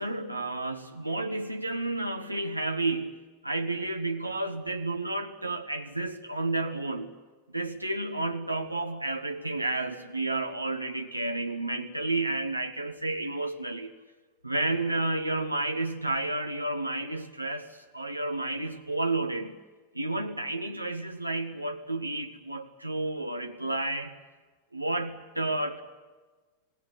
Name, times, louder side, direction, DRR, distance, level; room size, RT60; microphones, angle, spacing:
voice 1, 0.0-3.1 3.4-7.1 7.5-13.9 14.4-19.6 19.9-24.1 24.7-25.8, right 2 dB, 85° right, 6 dB, 1.3 m, -31 dB
28.0 x 18.5 x 10.0 m, 1.3 s
figure-of-eight pair, 90°, 0 cm